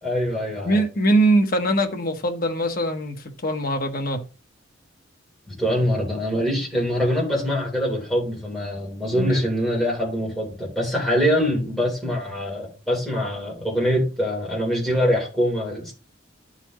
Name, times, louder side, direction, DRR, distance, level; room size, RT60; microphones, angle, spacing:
voice 1, 0.0-0.8 5.5-15.9, equal, ahead, 3.4 m, -24 dB
voice 2, 0.6-4.2 9.1-9.5, right 1 dB, 50° left, 1.1 m, -22 dB
12.0 x 4.1 x 3.1 m
head